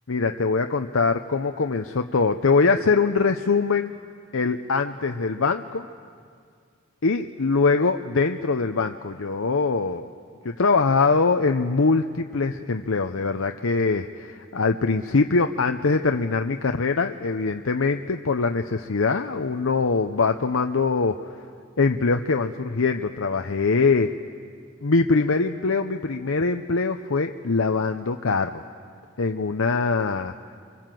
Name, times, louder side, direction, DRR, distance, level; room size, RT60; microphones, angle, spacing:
voice 1, 0.1-4.0 4.3-5.9 7.0-10.1 10.4-21.5 21.8-24.2 24.8-28.6 29.2-30.4, left 4 dB, 75° left, 6 dB, 0.8 m, -23 dB
27.0 x 25.5 x 7.7 m, 2.2 s
head